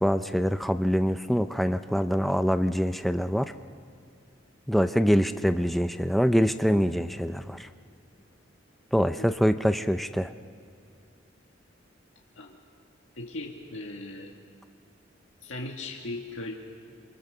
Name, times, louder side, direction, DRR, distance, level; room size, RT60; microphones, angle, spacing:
voice 1, 0.0-3.5 4.7-7.7 8.9-10.3, equal, ahead, 9 dB, 0.5 m, -24 dB
voice 2, 13.2-14.3 15.4-16.6, left 2 dB, 90° left, -1 dB, 1.8 m, -38 dB
26.5 x 24.5 x 6.8 m, 2.4 s
head